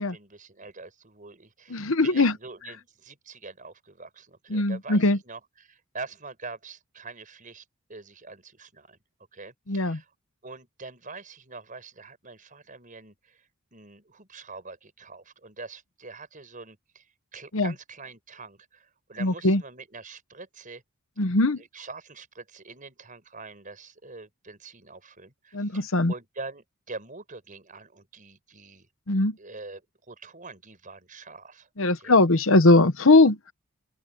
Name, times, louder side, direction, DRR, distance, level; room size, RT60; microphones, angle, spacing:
voice 1, 0.1-7.6 7.9-9.0 9.3-10.1 10.4-17.0 17.3-20.8 21.6-28.9 29.4-29.8 30.1-31.7 32.0-32.2, right 3 dB, 35° right, 5.4 m, -44 dB
voice 2, 1.7-2.3 4.5-5.2 9.7-10.0 17.5-17.7 19.2-19.6 21.2-21.6 25.5-26.1 29.1-29.3 31.8-33.5, left 2 dB, 60° left, 1.1 m, -20 dB
open air
head